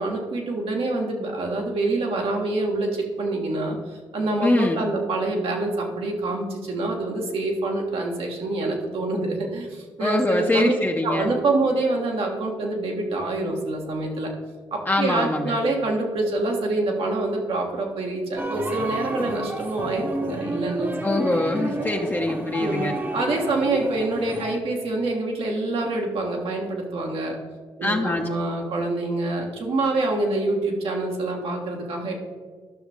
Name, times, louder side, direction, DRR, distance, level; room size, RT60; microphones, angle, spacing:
voice 1, 0.0-10.7 11.0-14.3 14.7-21.2 22.6-27.4 27.8-32.1, right 2 dB, 75° right, 0 dB, 1.7 m, -26 dB
voice 2, 4.4-4.9 10.0-11.3 14.9-15.6 21.0-23.0 27.8-28.3, left 2 dB, 20° left, 1 dB, 0.8 m, -23 dB
sound 1, 18.4-24.6, right 1 dB, 20° right, 1.0 m, -31 dB
12.0 x 6.0 x 3.6 m, 1.5 s
supercardioid pair, 55°, 10 cm